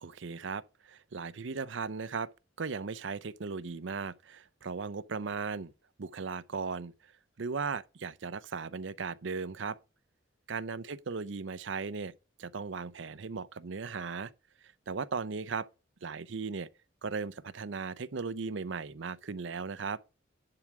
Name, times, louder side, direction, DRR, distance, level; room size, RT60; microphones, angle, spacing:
voice 1, 0.0-2.3 2.6-5.7 6.0-6.9 7.4-9.8 10.5-12.1 12.4-14.3 14.9-15.7 16.0-16.7 17.0-20.0, right 5 dB, 70° right, 0.6 m, -37 dB
10.5 x 4.9 x 6.0 m
head